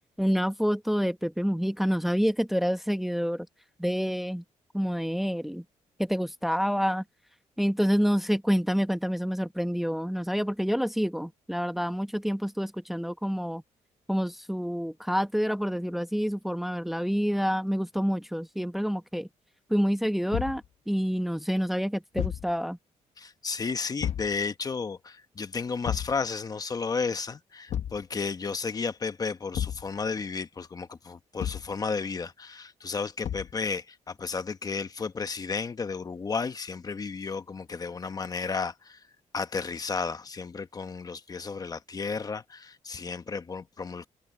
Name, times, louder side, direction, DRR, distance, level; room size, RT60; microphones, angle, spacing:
voice 1, 0.2-3.5 3.8-4.4 4.7-5.6 6.0-7.0 7.6-13.6 14.1-19.3 19.7-22.8, equal, ahead, 1.0 m, -28 dB
Thump thud, 20.3-20.7 22.1-22.5 24.0-24.3 25.8-26.2 27.7-28.0 29.5-29.9 31.4-31.7 33.2-33.6, left 10 dB, 60° left, 1.0 m, -32 dB
voice 2, 23.2-39.0 39.3-44.1, left 5 dB, 30° left, 1.1 m, -33 dB
cardioid pair, 120°, 13 cm